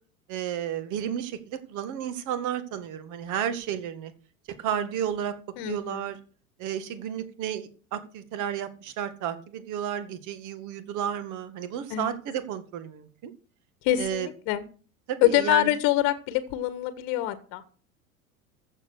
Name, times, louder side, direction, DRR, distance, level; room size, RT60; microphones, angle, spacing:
voice 1, 0.3-4.1 4.6-5.3 5.7-6.2 6.6-13.3 14.0-14.3 15.1-15.7, right 9 dB, 45° right, 11 dB, 2.1 m, -32 dB
voice 2, 5.6-6.0 11.9-12.2 13.8-14.7 15.2-17.6, left 14 dB, 50° left, 13 dB, 1.5 m, -25 dB
14.5 x 7.3 x 6.4 m, 0.39 s
figure-of-eight pair, 85°, 44 cm